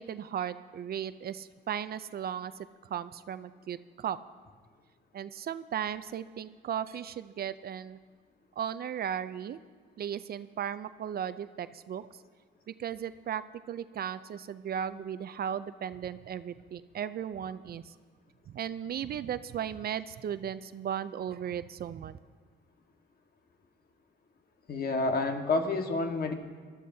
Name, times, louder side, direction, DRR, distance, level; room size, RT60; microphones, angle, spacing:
voice 1, 0.0-2.5 2.8-4.2 5.1-8.0 8.6-9.6 10.0-12.2 12.7-17.9 18.5-22.2, right 9 dB, 50° right, 13 dB, 0.5 m, -36 dB
voice 2, 24.7-26.3, left 3 dB, 50° left, 4 dB, 1.5 m, -29 dB
20.0 x 13.0 x 2.8 m, 1.5 s
cardioid pair, 90°, 20 cm